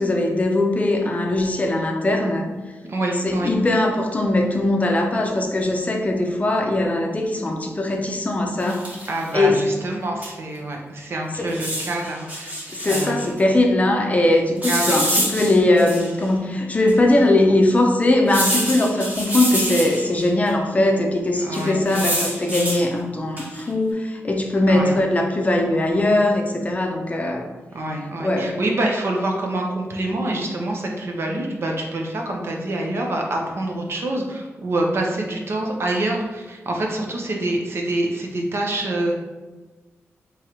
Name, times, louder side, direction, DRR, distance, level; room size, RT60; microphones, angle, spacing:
voice 1, 0.0-2.5 3.2-8.9 9.3-9.7 11.3-11.6 12.7-27.5 28.2-28.6, left 1 dB, 30° left, 2 dB, 0.5 m, -20 dB
voice 2, 2.9-3.5 9.1-12.5 12.9-13.4 14.6-15.0 21.4-21.8 24.7-24.9 27.7-39.2, right 1 dB, 55° right, 0 dB, 0.7 m, -26 dB
sound 1, 8.6-9.2 10.2-10.3 10.5-10.6 11.5-13.3 14.6-16.2 16.9-17.0 18.3-20.2 21.5-22.8 23.4-23.7, right 1 dB, 35° right, 1.2 m, -26 dB
3.6 x 3.1 x 3.0 m, 1.2 s
wide cardioid pair, 105°, 5 cm